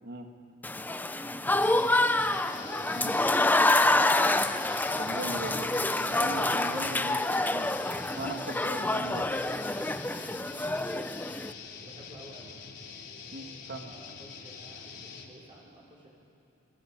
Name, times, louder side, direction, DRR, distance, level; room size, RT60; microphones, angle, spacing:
Applause / Crowd, 0.6-11.5, left 2 dB, 10° left, 0.6 m, -27 dB
voice 1, 0.9-1.9 2.6-3.9 8.4-8.6 10.0-11.2 11.8-12.5 13.8-16.1, right 1 dB, 25° right, -2 dB, 5.7 m, -52 dB
sound 1, 1.6-15.3, left 5 dB, 60° left, 3.3 m, -45 dB
voice 2, 5.0-5.7 6.0-7.7 8.2-9.3 13.3-13.9, right 1 dB, 55° right, 4 dB, 2.0 m, -39 dB
30.0 x 21.5 x 9.0 m, 2.9 s
head